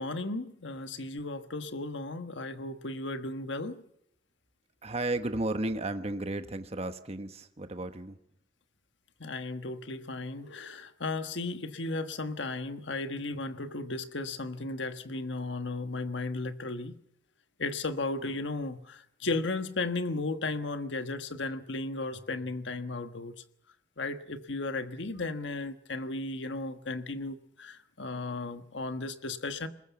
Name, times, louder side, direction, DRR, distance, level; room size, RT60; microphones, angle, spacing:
voice 1, 0.0-3.8 9.2-17.0 17.6-23.3 24.0-29.7, left 2 dB, 70° left, 9 dB, 1.4 m, -35 dB
voice 2, 4.8-8.2, right 2 dB, 35° right, 9 dB, 1.1 m, -33 dB
23.5 x 20.5 x 7.1 m, 0.74 s
head